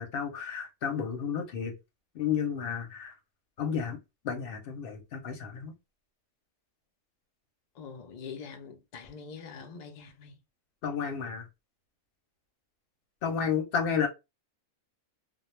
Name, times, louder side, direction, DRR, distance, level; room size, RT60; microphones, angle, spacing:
voice 1, 0.0-1.7 2.1-3.1 3.6-4.0 4.2-5.7 10.8-11.5 13.2-14.1, left 7 dB, 55° left, 0.7 m, -31 dB
voice 2, 7.7-10.4 13.2-13.5, left 6 dB, 90° left, 0.3 m, -44 dB
2.2 x 2.0 x 3.0 m
omnidirectional pair, 1.4 m